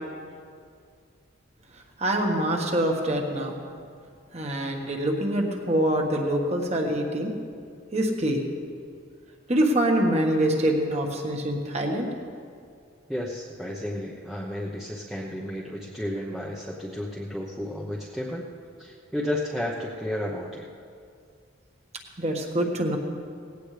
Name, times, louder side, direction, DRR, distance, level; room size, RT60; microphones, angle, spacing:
voice 1, 2.0-3.6 4.3-7.3 7.9-8.4 9.5-12.1 22.2-23.0, right 1 dB, 30° right, 2 dB, 1.5 m, -25 dB
voice 2, 13.1-18.5 18.8-20.7, left 1 dB, ahead, -5 dB, 0.9 m, -32 dB
19.0 x 17.0 x 3.4 m, 2.3 s
head